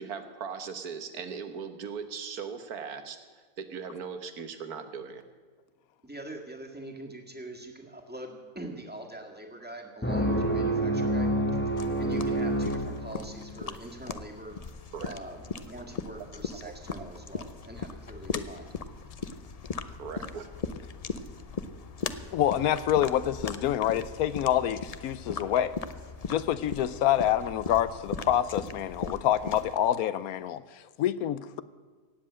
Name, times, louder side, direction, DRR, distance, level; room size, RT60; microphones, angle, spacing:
voice 1, 0.0-5.2 14.9-15.1 16.6-16.7 20.0-20.5, right 6 dB, 80° right, 9 dB, 1.7 m, -39 dB
voice 2, 6.0-11.3 11.6-14.6 15.0-18.7, right 1 dB, 5° right, 2 dB, 1.7 m, -43 dB
sound 1, 10.0-13.6, right 1 dB, 10° left, 0.9 m, -28 dB
sound 2, 11.8-29.8, left 5 dB, 55° left, 0.4 m, -39 dB
voice 3, 22.3-25.7 26.3-31.6, left 11 dB, 75° left, 15 dB, 1.1 m, -27 dB
17.5 x 7.7 x 8.6 m, 1.5 s
omnidirectional pair, 1.6 m